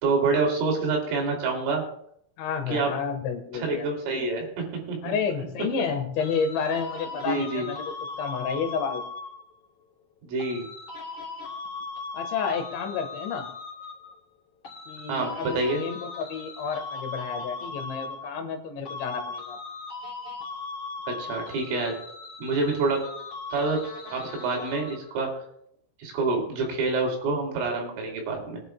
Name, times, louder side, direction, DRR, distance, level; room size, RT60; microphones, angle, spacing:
voice 1, 0.0-1.8 2.7-2.9 3.5-5.1 7.2-7.7 10.3-10.7 15.1-15.8 21.2-21.9 22.4-23.0 23.5-23.8 24.1-25.3 26.0-28.6, right 3 dB, 85° right, 0 dB, 5.4 m, -27 dB
voice 2, 2.4-3.9 5.0-9.0 12.1-13.5 14.9-19.6, left 6 dB, 75° left, 5 dB, 3.5 m, -30 dB
sound 1, 6.2-9.5 10.4-14.2 14.6-18.6 18.8-25.2, left 4 dB, 45° left, 3.0 m, -38 dB
23.0 x 10.5 x 2.3 m, 0.70 s
omnidirectional pair, 5.6 m